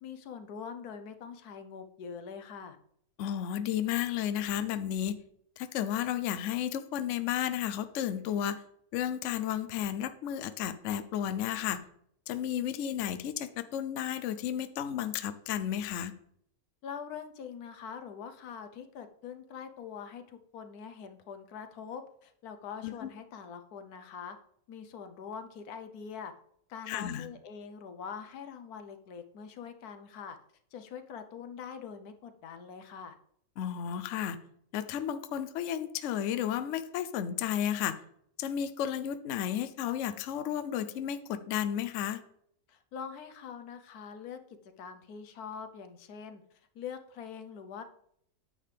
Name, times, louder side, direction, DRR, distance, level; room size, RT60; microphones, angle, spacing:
voice 1, 0.0-2.8 16.8-24.4 24.7-26.3 26.7-30.4 30.7-33.2 42.7-44.4 44.8-46.4 46.7-47.8, left 6 dB, 90° left, 8 dB, 1.3 m, -44 dB
voice 2, 3.2-5.2 5.6-8.6 8.9-11.8 12.3-16.1 22.8-23.1 26.9-27.3 33.6-34.4 34.7-38.0 38.4-42.2, left 10 dB, 65° left, 11 dB, 0.8 m, -33 dB
9.7 x 7.4 x 3.3 m, 0.70 s
omnidirectional pair, 1.6 m